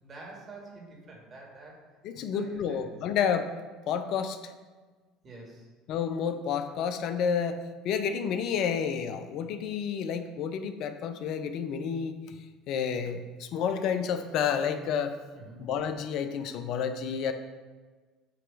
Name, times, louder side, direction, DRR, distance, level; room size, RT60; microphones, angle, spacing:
voice 1, 0.0-1.8 2.1-2.8 5.2-5.7 15.4-15.7, right 2 dB, 40° right, -1 dB, 1.9 m, -47 dB
voice 2, 2.0-3.5 3.9-4.5 5.9-12.2 12.7-15.2 15.6-17.3, left 7 dB, 60° left, 9 dB, 0.5 m, -30 dB
7.8 x 3.0 x 4.7 m, 1.4 s
hypercardioid pair, 70°, 0 cm